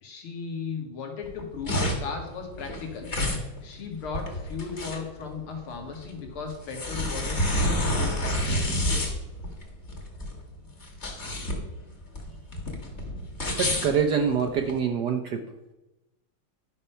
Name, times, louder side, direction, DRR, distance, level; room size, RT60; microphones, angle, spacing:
voice 1, 0.0-3.1 3.6-9.0, left 5 dB, 75° left, 2 dB, 2.6 m, -36 dB
sound 1, 1.2-14.8, left 1 dB, 30° left, 1.9 m, -29 dB
voice 2, 13.6-15.4, right 7 dB, 65° right, 5 dB, 1.1 m, -25 dB
11.5 x 5.6 x 5.6 m, 0.99 s
omnidirectional pair, 2.4 m